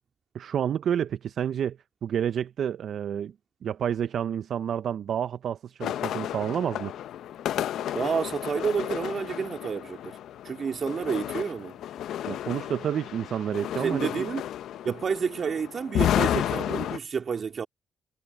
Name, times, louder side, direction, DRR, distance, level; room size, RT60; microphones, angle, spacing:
voice 1, 0.3-3.3 3.6-6.9 12.3-14.3, right 9 dB, 65° right, 0.5 m, -29 dB
sound 1, 5.8-17.0, left 11 dB, 80° left, 0.6 m, -32 dB
voice 2, 7.9-10.2 10.4-11.8 13.8-14.4 14.8-17.7, right 6 dB, 50° right, 3.0 m, -29 dB
cardioid pair, 85°, 0 cm